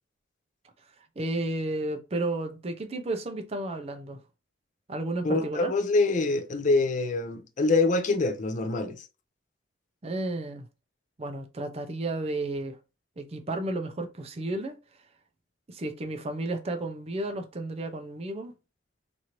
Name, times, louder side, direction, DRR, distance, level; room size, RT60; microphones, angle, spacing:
voice 1, 1.2-4.2 4.9-5.7 10.0-10.7 11.2-12.8 13.2-14.8 15.7-18.5, right 2 dB, 30° right, 0.4 m, -32 dB
voice 2, 5.2-9.1, left 3 dB, 40° left, 0.4 m, -25 dB
2.9 x 2.5 x 2.8 m
head